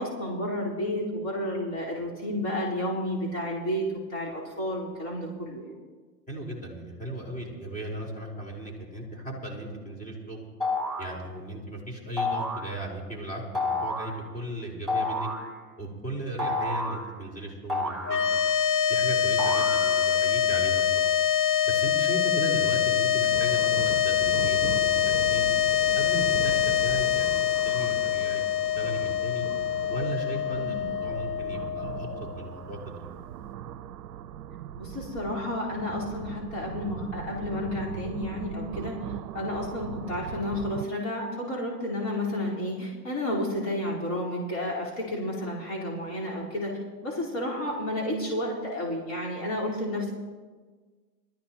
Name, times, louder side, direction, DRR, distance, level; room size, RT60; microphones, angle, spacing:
voice 1, 0.0-5.7 30.5-30.8 34.7-50.1, left 1 dB, 35° left, -6 dB, 4.8 m, -31 dB
voice 2, 6.3-10.5 11.0-15.3 15.8-18.3 18.9-21.2 21.6-25.5 25.9-28.4 28.7-29.5 29.9-32.1 32.3-33.1, right 1 dB, 15° left, -1 dB, 4.7 m, -36 dB
sound 1, 10.6-11.2 12.2-12.7 13.6-14.2 14.9-15.5 16.4-17.1 17.7-18.7 19.4-20.2, left 2 dB, ahead, 3.0 m, -30 dB
sound 2, 18.0-32.5, left 9 dB, 50° left, 1.1 m, -25 dB
sound 3, 23.3-40.9, right 10 dB, 85° right, 0.7 m, -39 dB
21.5 x 14.0 x 3.1 m, 1.4 s
hypercardioid pair, 105°, 47 cm